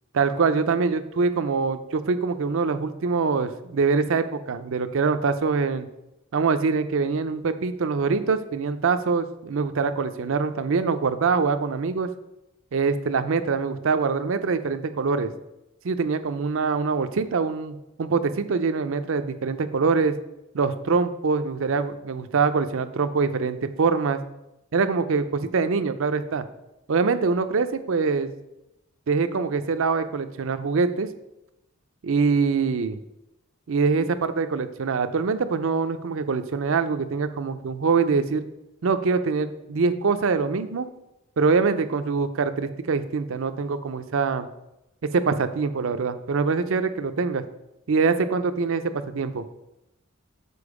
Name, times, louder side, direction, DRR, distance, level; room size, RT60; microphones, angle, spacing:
voice 1, 0.1-5.9 6.3-12.1 12.7-15.3 15.8-20.2 20.5-24.2 24.7-26.4 26.9-28.3 29.1-31.1 32.0-33.0 33.7-38.4 38.8-40.9 41.4-44.5 45.0-47.4 47.9-49.5, right 4 dB, 65° right, 10 dB, 0.5 m, -24 dB
6.9 x 4.4 x 4.8 m, 0.91 s
head